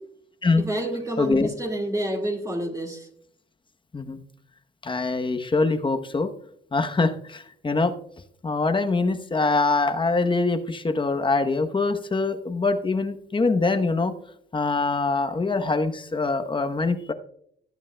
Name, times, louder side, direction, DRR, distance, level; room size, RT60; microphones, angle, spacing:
voice 1, 0.6-3.1, right 1 dB, 15° right, 1 dB, 1.9 m, -28 dB
voice 2, 1.2-1.5 3.9-4.2 4.8-6.3 6.7-7.9 8.4-14.1 14.5-17.1, left 3 dB, 25° left, 8 dB, 0.9 m, -24 dB
18.5 x 8.2 x 2.2 m, 0.67 s
cardioid pair, 90°, 20 cm